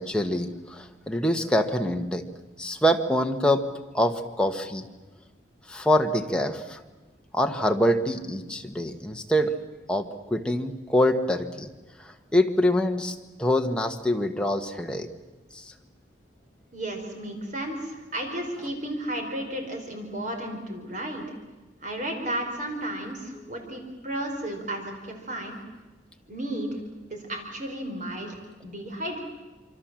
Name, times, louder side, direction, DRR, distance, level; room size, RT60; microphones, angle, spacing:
voice 1, 0.0-2.2 2.6-4.9 5.7-6.8 7.3-9.5 9.9-11.7 12.0-15.1 15.5-15.7, equal, 5° left, 4 dB, 1.4 m, -25 dB
voice 2, 16.7-21.2 21.8-25.6 26.3-26.8 27.1-29.2, right 1 dB, 45° right, 3 dB, 4.7 m, -33 dB
26.5 x 24.5 x 7.6 m, 1.2 s
head